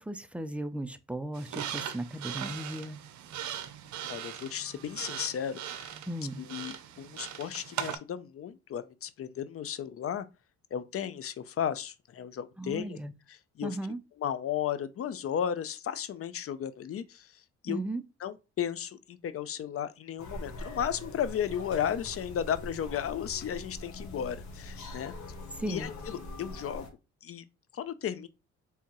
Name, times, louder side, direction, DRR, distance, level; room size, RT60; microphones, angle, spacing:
voice 1, 0.0-3.0 6.1-6.4 12.6-13.1 13.6-14.0 17.7-18.0 25.5-25.9, right 1 dB, 5° right, 0.5 m, -36 dB
sound 1, 1.3-8.0, right 10 dB, 70° right, 0.7 m, -39 dB
voice 2, 4.1-5.9 6.4-10.3 10.7-13.0 13.6-13.7 14.2-17.3 17.6-17.8 18.2-25.1 25.7-26.9 27.2-27.4 27.7-28.3, left 9 dB, 50° left, 0.5 m, -34 dB
sound 2, 20.2-26.9, left 2 dB, 70° left, 1.4 m, -43 dB
4.6 x 3.4 x 3.0 m
cardioid pair, 90°, 30 cm